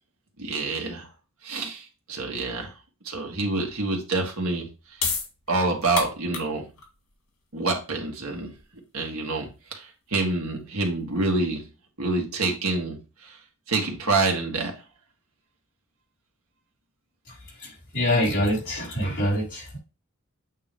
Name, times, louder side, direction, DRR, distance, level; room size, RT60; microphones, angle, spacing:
voice 1, 0.4-1.1 1.4-2.7 3.0-4.7 5.5-6.7 7.5-8.5 8.9-11.7 12.0-13.4 13.7-14.7, right 3 dB, 80° right, 1.9 m, -27 dB
sound 1, 4.5-11.3, left 5 dB, 85° left, 2.2 m, -35 dB
voice 2, 17.3-19.8, equal, 50° left, 4.4 m, -26 dB
8.4 x 3.0 x 5.2 m
head